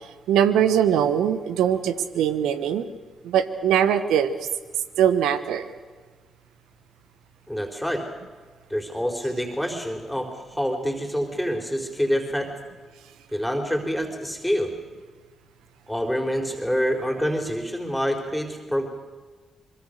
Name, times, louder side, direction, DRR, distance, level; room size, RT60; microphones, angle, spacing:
voice 1, 0.3-2.9 3.2-4.4 5.0-5.7, right 9 dB, 75° right, 11 dB, 1.2 m, -21 dB
voice 2, 7.5-8.0 8.7-12.5 13.3-14.7 15.9-18.9, equal, 5° left, 3 dB, 4.4 m, -26 dB
25.0 x 22.5 x 6.7 m, 1.4 s
hypercardioid pair, 45°, 0 cm